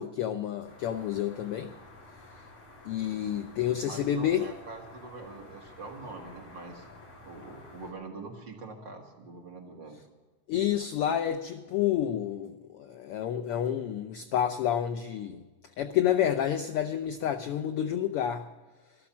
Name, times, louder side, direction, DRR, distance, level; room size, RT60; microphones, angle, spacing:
voice 1, 0.0-1.7 2.8-4.5 10.5-15.4 15.8-18.4, left 10 dB, 85° left, 8 dB, 1.2 m, -29 dB
sound 1, 0.7-7.9, left 2 dB, 50° left, 3.6 m, -51 dB
voice 2, 3.9-6.8 7.2-10.0, right 3 dB, 45° right, 1 dB, 2.4 m, -44 dB
13.0 x 12.5 x 7.2 m, 1.2 s
omnidirectional pair, 3.3 m